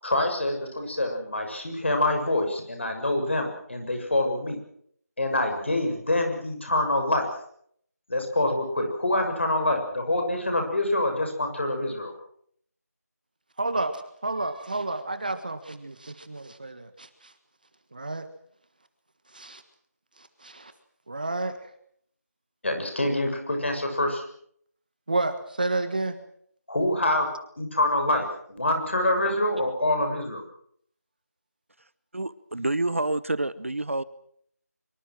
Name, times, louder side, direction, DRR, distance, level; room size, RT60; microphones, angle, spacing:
voice 1, 0.0-4.6 5.2-7.4 8.1-12.1 22.6-24.3 26.7-27.3 27.6-30.4, left 1 dB, 45° left, 4 dB, 6.9 m, -26 dB
voice 2, 13.6-17.1 17.9-18.3 19.3-19.6 20.4-20.7 21.1-21.6 25.1-26.2, right 2 dB, 30° right, 10 dB, 1.6 m, -30 dB
voice 3, 32.1-34.0, right 2 dB, 50° right, 17 dB, 1.0 m, -28 dB
24.5 x 24.0 x 6.3 m, 0.65 s
figure-of-eight pair, 175°, 9 cm